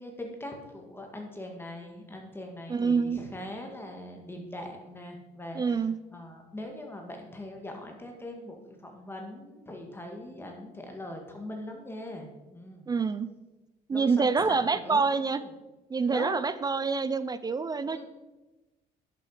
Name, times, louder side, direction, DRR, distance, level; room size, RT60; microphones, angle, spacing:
voice 1, 0.0-12.9 13.9-15.5 16.1-16.4 17.9-18.0, left 1 dB, 15° left, 2 dB, 1.8 m, -41 dB
voice 2, 2.7-3.2 5.6-6.0 12.9-13.3 13.9-15.4 15.9-18.0, right 4 dB, 25° right, 14 dB, 0.4 m, -26 dB
10.5 x 7.0 x 4.9 m, 1.1 s
cardioid pair, 110°, 17 cm